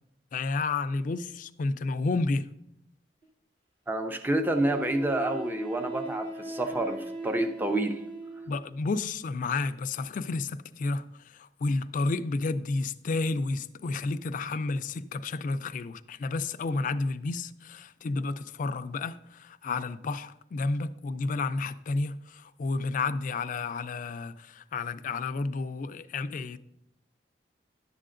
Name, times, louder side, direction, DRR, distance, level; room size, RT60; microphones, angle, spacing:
voice 1, 0.3-2.5 8.5-26.6, left 3 dB, 50° left, 0.3 m, -31 dB
Wind instrument woodwind instrument, 3.2-3.3 4.5-8.6, right 3 dB, 30° right, 0.9 m, -38 dB
voice 2, 3.9-7.9, right 1 dB, 10° right, 0.5 m, -28 dB
10.5 x 7.5 x 2.5 m
head